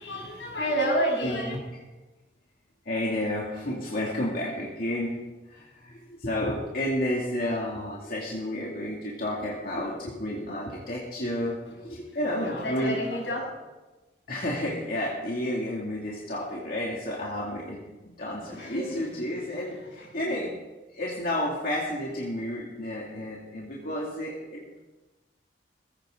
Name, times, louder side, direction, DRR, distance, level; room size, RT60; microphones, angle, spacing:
voice 1, 0.0-1.6 12.1-13.5 18.4-20.4, equal, 80° left, -2 dB, 6.5 m, -31 dB
voice 2, 1.2-1.6 2.9-5.2 5.5-13.0 14.3-20.5 20.9-24.8, left 1 dB, 55° left, -4 dB, 2.5 m, -31 dB
19.5 x 16.0 x 3.8 m, 1.1 s
head